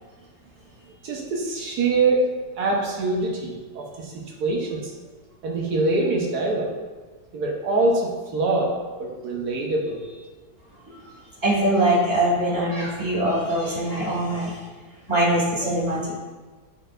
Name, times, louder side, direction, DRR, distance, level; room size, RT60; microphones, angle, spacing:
voice 1, 1.0-2.2 2.6-4.9 5.4-6.7 7.3-8.7 9.0-10.0, right 3 dB, 80° right, -2 dB, 1.5 m, -24 dB
voice 2, 10.9-14.6 15.1-16.2, right 1 dB, 10° right, -6 dB, 1.8 m, -23 dB
10.5 x 4.4 x 2.5 m, 1.3 s
omnidirectional pair, 1.7 m